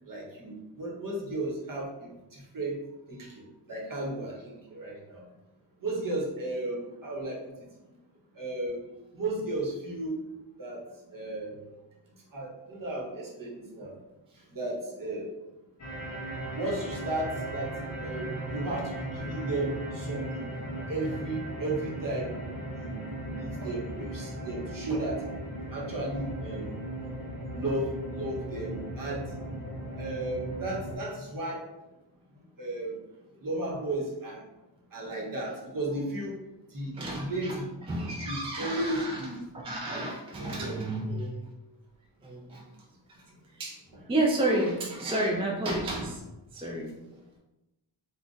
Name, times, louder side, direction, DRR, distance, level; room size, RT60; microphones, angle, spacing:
voice 1, 0.1-2.8 3.1-3.4 3.7-5.2 5.8-7.7 8.3-8.8 9.1-10.2 10.6-10.8 11.1-11.6 12.3-13.9 14.5-15.3 16.5-17.7 18.0-20.5 20.9-22.3 22.7-25.2 25.7-26.7 27.5-29.3 30.0-31.6 32.6-32.9 33.4-34.4 34.9-36.3 36.7-37.7 38.3-39.4 39.9-40.1 40.4-40.7, right 2 dB, 45° right, -3 dB, 0.9 m, -34 dB
sound 1, 15.8-31.0, right 1 dB, 35° left, 0.9 m, -37 dB
voice 2, 36.9-37.6 37.9-41.5 42.2-42.7 43.5-43.8 44.1-46.2 46.5-46.9, right 1 dB, 15° right, -2 dB, 0.3 m, -31 dB
2.5 x 2.2 x 3.8 m, 0.99 s
wide cardioid pair, 100°, 47 cm